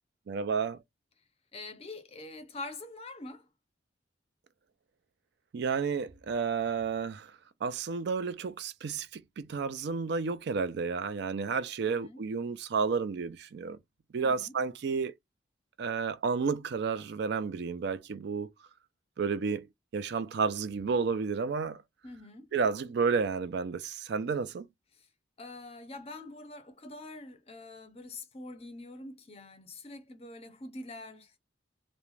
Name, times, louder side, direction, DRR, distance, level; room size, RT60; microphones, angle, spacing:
voice 1, 0.3-0.8 5.5-7.3 7.6-13.8 14.1-15.1 15.8-18.5 19.2-19.7 19.9-21.8 22.5-24.7, right 5 dB, 60° right, 0.4 m, -31 dB
voice 2, 1.5-3.5 11.8-12.2 14.2-14.5 22.0-22.5 25.4-31.4, left 2 dB, 30° left, 0.5 m, -45 dB
2.3 x 2.1 x 3.1 m
head